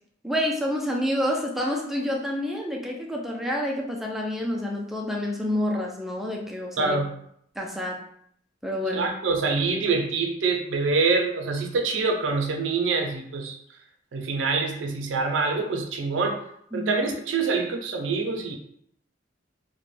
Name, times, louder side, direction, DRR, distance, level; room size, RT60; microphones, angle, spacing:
voice 1, 0.2-7.0 7.6-8.0 8.6-9.1 16.7-16.9, left 1 dB, ahead, 0 dB, 0.3 m, -28 dB
voice 2, 6.8-7.1 8.9-13.6 14.1-16.4 16.7-18.5, right 4 dB, 80° right, 3 dB, 0.4 m, -25 dB
2.2 x 2.0 x 3.0 m, 0.69 s
head